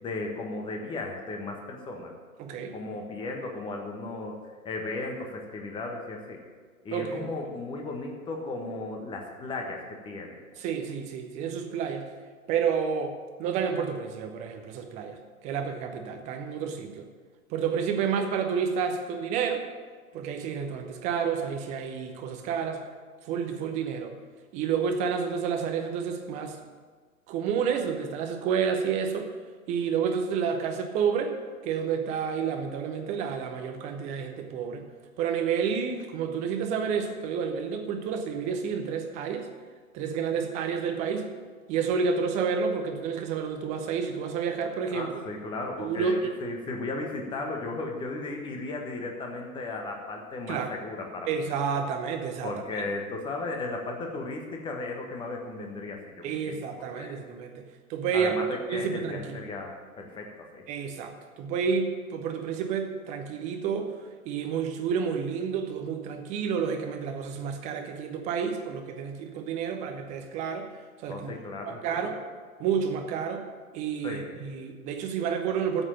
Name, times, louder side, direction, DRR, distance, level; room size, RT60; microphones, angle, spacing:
voice 1, 0.0-2.1 2.7-4.4 4.6-6.4 6.8-10.3 44.9-51.5 52.4-56.6 57.0-57.1 58.1-60.6 71.1-72.0 74.0-74.4, left 3 dB, 10° left, 2 dB, 1.4 m, -35 dB
voice 2, 2.4-2.7 6.9-7.3 10.6-12.1 12.5-15.2 15.4-17.1 17.5-19.6 20.1-22.8 23.2-24.2 24.5-26.6 27.3-29.3 29.7-31.4 31.6-34.9 35.2-39.5 39.9-41.3 41.7-45.1 45.8-46.3 50.5-50.7 51.3-52.5 56.2-57.6 57.9-59.4 60.7-63.9 64.2-70.7 71.0-71.3 71.7-72.2 72.6-73.4 73.7-75.8, right 6 dB, 15° right, 5 dB, 0.9 m, -30 dB
9.4 x 8.1 x 8.9 m, 1.6 s
figure-of-eight pair, 115°, 44 cm